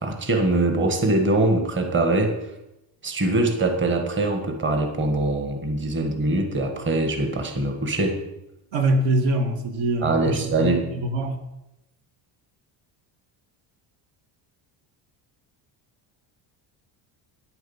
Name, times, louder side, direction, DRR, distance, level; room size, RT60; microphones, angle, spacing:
voice 1, 0.0-2.3 3.0-8.2 10.0-10.8, right 2 dB, 25° right, 4 dB, 1.6 m, -23 dB
voice 2, 8.7-11.4, right 2 dB, 70° right, 5 dB, 1.8 m, -24 dB
10.0 x 7.8 x 7.2 m, 0.92 s
cardioid pair, 150°, 46 cm